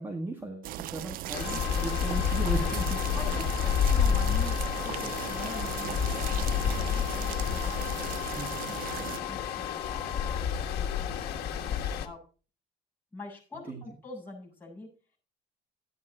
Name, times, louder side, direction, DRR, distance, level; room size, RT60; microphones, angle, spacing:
voice 1, 0.0-3.8 8.4-8.7 13.7-13.8, right 2 dB, 15° right, 2 dB, 1.7 m, -37 dB
sound 1, 0.6-9.2, right 14 dB, 65° right, 0.5 m, -38 dB
Stream, 1.3-12.1, left 8 dB, 80° left, 1.8 m, -30 dB
Wind instrument woodwind instrument, 1.4-10.4, left 11 dB, 45° left, 3.4 m, -41 dB
voice 2, 3.1-12.2 13.1-14.9, left 2 dB, 10° left, -3 dB, 7.9 m, -45 dB
14.0 x 9.4 x 4.4 m, 0.37 s
cardioid pair, 160°, 16 cm